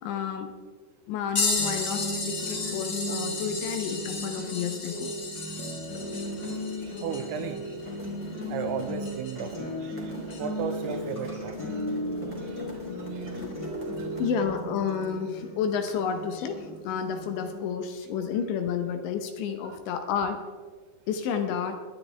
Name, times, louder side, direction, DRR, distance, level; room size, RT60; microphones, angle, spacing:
voice 1, 0.0-0.5 1.1-5.1 13.2-13.5 14.2-20.4 21.1-21.7, left 7 dB, 75° left, 6 dB, 2.9 m, -31 dB
sound 1, 1.4-9.6 10.3-10.4 12.7-12.8 13.8-14.0 15.0-15.1, left 3 dB, 40° left, 3.3 m, -34 dB
sound 2, 1.6-17.6, equal, 15° left, 1.3 m, -36 dB
sound 3, 5.8-14.4, equal, 10° right, 0.6 m, -44 dB
voice 2, 6.6-7.8 8.5-10.1 10.4-11.9 12.4-12.6 12.9-13.4 14.0-14.2 19.6-19.7, right 7 dB, 85° right, 7 dB, 2.7 m, -36 dB
21.5 x 10.0 x 3.3 m, 1.5 s
omnidirectional pair, 5.8 m